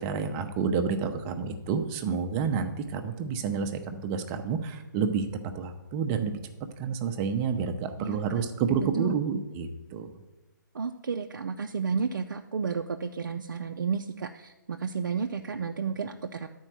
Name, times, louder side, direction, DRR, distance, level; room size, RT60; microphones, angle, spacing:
voice 1, 0.0-5.3 5.5-6.4 6.8-10.1, right 6 dB, 25° right, 7 dB, 0.7 m, -29 dB
voice 2, 8.0-8.4 8.8-9.2 10.7-16.5, right 5 dB, 70° right, 4 dB, 0.5 m, -32 dB
10.5 x 4.6 x 6.1 m, 1.0 s
figure-of-eight pair, 140°, 11 cm